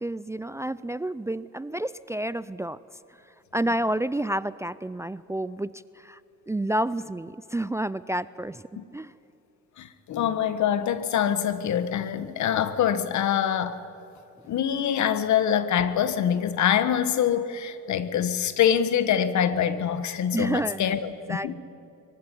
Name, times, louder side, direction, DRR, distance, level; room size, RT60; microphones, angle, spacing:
voice 1, 0.0-2.8 3.5-6.2 6.5-8.6 8.9-9.1 20.3-20.9 21.3-21.5, right 1 dB, 10° right, 18 dB, 0.4 m, -29 dB
voice 2, 9.8-13.8 14.5-21.5, left 9 dB, 70° left, 13 dB, 1.4 m, -25 dB
23.5 x 15.5 x 9.8 m, 2.9 s
cardioid pair, 90°, 30 cm